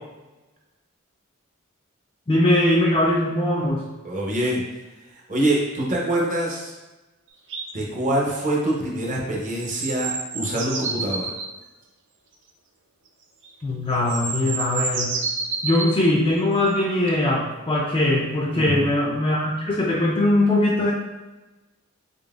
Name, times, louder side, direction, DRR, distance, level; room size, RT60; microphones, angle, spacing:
voice 1, 2.3-3.8 13.6-15.1 15.6-20.9, left 1 dB, 25° left, -3 dB, 0.4 m, -21 dB
voice 2, 4.0-4.6 5.3-6.7 7.7-11.3 18.5-18.9, right 1 dB, 35° right, -3 dB, 0.8 m, -25 dB
sound 1, 7.5-7.7 9.6-11.5 13.4-13.5 13.9-15.9 17.1-17.2, right 4 dB, 60° right, 0.5 m, -29 dB
3.8 x 3.5 x 2.4 m, 1.1 s
head